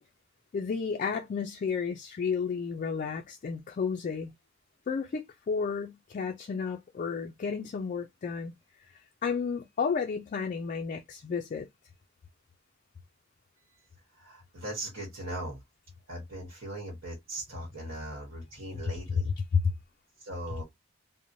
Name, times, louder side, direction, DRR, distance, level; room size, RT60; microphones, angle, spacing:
voice 1, 0.5-4.3 4.9-8.5 9.2-11.7 19.5-19.6, left 5 dB, 40° left, 0.3 m, -32 dB
voice 2, 14.2-15.6 16.1-19.3 20.2-20.6, right 1 dB, 75° right, 1.1 m, -39 dB
2.9 x 2.0 x 2.6 m
head